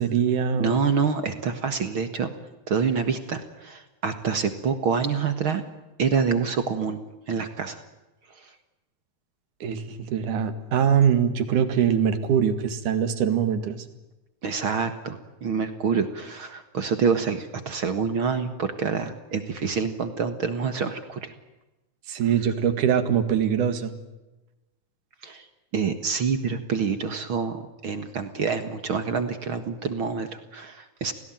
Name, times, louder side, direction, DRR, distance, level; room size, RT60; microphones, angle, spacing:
voice 1, 0.0-0.7 9.6-13.9 22.1-23.9, right 8 dB, 85° right, 10 dB, 3.5 m, -23 dB
voice 2, 0.6-2.3 2.7-5.6 6.0-7.0 7.3-7.8 14.4-21.3 25.2-25.5 25.7-31.1, right 5 dB, 50° right, 9 dB, 2.1 m, -27 dB
28.5 x 18.5 x 9.1 m, 1.1 s
omnidirectional pair, 3.5 m